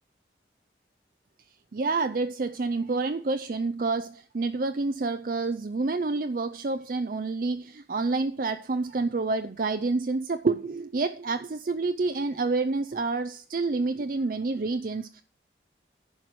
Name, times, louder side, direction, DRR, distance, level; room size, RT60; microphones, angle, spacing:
voice 1, 1.7-15.2, right 3 dB, 50° right, 0.5 m, -28 dB
11.0 x 4.7 x 7.7 m
head